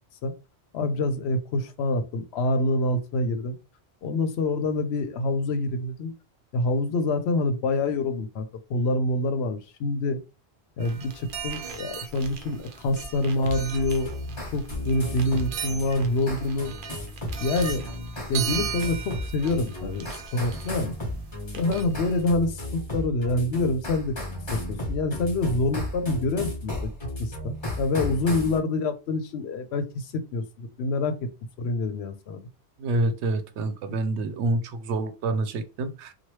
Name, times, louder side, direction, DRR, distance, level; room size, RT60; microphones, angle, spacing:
voice 1, 0.7-3.6 4.0-6.1 6.5-10.2 10.8-14.1 14.5-16.7 17.4-17.9 18.3-20.9 21.5-24.1 24.5-26.9 27.2-31.1 31.6-32.4, left 2 dB, 75° left, 0.8 m, -26 dB
sound 1, 10.8-22.2, right 7 dB, 55° right, 0.7 m, -38 dB
sound 2, 13.4-28.6, left 1 dB, 25° left, 1.1 m, -35 dB
voice 2, 32.8-36.1, right 2 dB, 85° right, 0.9 m, -27 dB
2.9 x 2.3 x 3.1 m
omnidirectional pair, 1.1 m